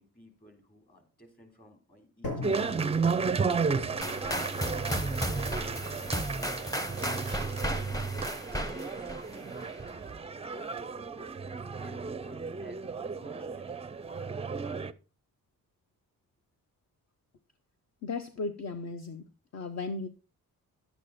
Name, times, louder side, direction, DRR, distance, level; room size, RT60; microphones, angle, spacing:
voice 1, 0.0-2.8 3.4-7.0 7.7-13.8, equal, 25° left, 5 dB, 3.5 m, -56 dB
sound 1, 2.2-10.3, left 2 dB, 90° left, 7.0 m, -45 dB
sound 2, 2.4-14.9, right 5 dB, 20° right, 0.4 m, -33 dB
sound 3, 4.0-9.9, equal, 10° left, 0.9 m, -34 dB
voice 2, 18.0-19.2 19.5-20.1, left 3 dB, 50° left, 9 dB, 0.9 m, -35 dB
11.5 x 8.3 x 4.2 m, 0.34 s
wide cardioid pair, 130°, 34 cm